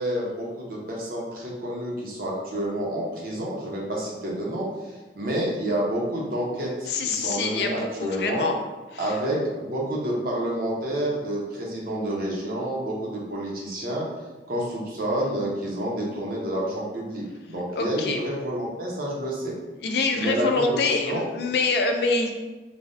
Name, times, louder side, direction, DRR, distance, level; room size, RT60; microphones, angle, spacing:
voice 1, 0.0-8.5 9.0-14.1 14.5-19.5 20.1-21.3, right 1 dB, 55° right, -4 dB, 0.7 m, -29 dB
voice 2, 6.9-8.6 8.9-9.2 17.8-18.2 19.8-22.3, left 3 dB, 65° left, 4 dB, 0.3 m, -25 dB
3.2 x 2.1 x 2.5 m, 1.2 s
head